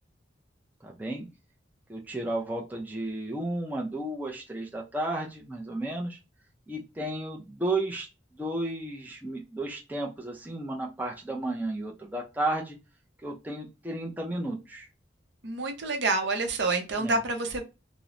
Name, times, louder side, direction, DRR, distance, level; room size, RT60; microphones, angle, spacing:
voice 1, 0.8-1.3 1.9-6.2 6.7-8.1 8.3-12.8 13.2-14.9 17.0-17.2, right 1 dB, 10° right, -2 dB, 0.4 m, -33 dB
voice 2, 15.4-17.6, right 3 dB, 70° right, 4 dB, 0.6 m, -28 dB
2.9 x 2.0 x 2.4 m, 0.27 s
head